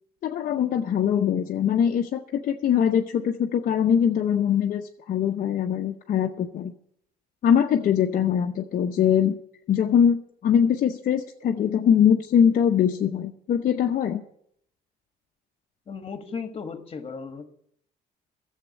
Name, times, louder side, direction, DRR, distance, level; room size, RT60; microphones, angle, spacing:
voice 1, 0.2-6.7 7.4-9.3 9.7-14.2, left 8 dB, 50° left, 3 dB, 0.8 m, -22 dB
voice 2, 15.9-17.5, left 5 dB, 35° left, 9 dB, 1.4 m, -35 dB
12.0 x 7.4 x 8.3 m, 0.68 s
cardioid pair, 110°, 17 cm